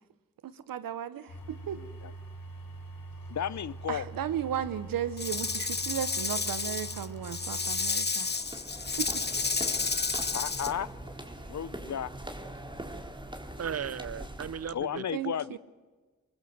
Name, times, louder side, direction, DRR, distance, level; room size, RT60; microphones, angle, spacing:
voice 1, 0.4-1.8 3.9-8.3 9.0-9.2 15.1-15.6, right 10 dB, 80° right, 14 dB, 1.1 m, -35 dB
sound 1, 1.3-7.9, right 2 dB, 85° left, 4.3 m, -44 dB
voice 2, 1.7-2.1 3.3-4.1 10.3-10.9 11.5-12.1 14.7-15.6, left 8 dB, 55° left, 19 dB, 0.7 m, -34 dB
Rattle / Rattle (instrument), 5.2-10.7, left 4 dB, 30° left, 1.2 m, -31 dB
sound 2, 8.2-14.7, right 1 dB, 15° right, 3.6 m, -42 dB
voice 3, 13.6-15.0, right 8 dB, 45° right, 21 dB, 0.7 m, -36 dB
23.5 x 21.5 x 7.9 m, 1.4 s
supercardioid pair, 45°, 33 cm